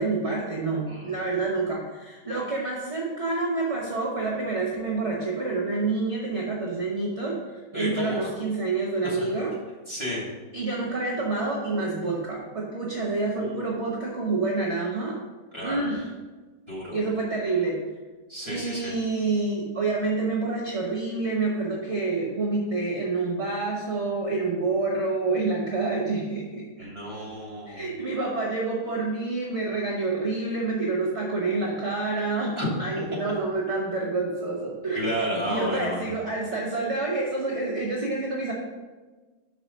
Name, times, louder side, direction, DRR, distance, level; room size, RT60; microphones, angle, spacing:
voice 1, 0.0-9.5 10.5-15.2 15.6-16.1 16.9-17.8 18.4-26.9 27.7-38.5, right 3 dB, 40° right, -3 dB, 1.1 m, -28 dB
voice 2, 7.7-8.3 9.9-10.2 13.4-13.7 15.5-15.8 16.7-17.0 18.3-18.9 26.8-27.9 32.6-32.7 34.9-36.1, equal, 15° left, -5 dB, 2.0 m, -31 dB
5.9 x 4.9 x 6.4 m, 1.3 s
omnidirectional pair, 2.2 m